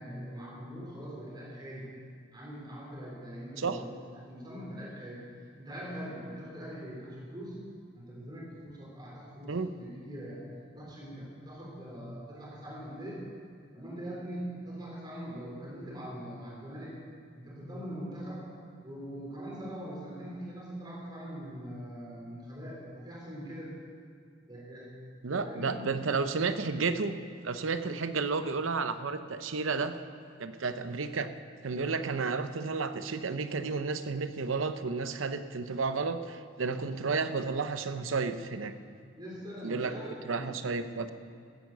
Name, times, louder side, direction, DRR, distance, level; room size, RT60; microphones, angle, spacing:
voice 1, 0.0-1.9 2.3-5.2 5.6-7.6 7.9-10.4 10.7-13.2 13.7-17.0 17.4-18.4 18.8-23.7 24.5-25.0 25.2-25.9 39.2-40.5, equal, 20° right, -4 dB, 3.8 m, -42 dB
voice 2, 25.2-27.2 27.4-29.9 30.4-31.3 31.6-38.7 39.6-39.9 40.3-41.1, right 4 dB, 85° right, 10 dB, 0.7 m, -32 dB
15.5 x 9.6 x 6.7 m, 2.3 s
head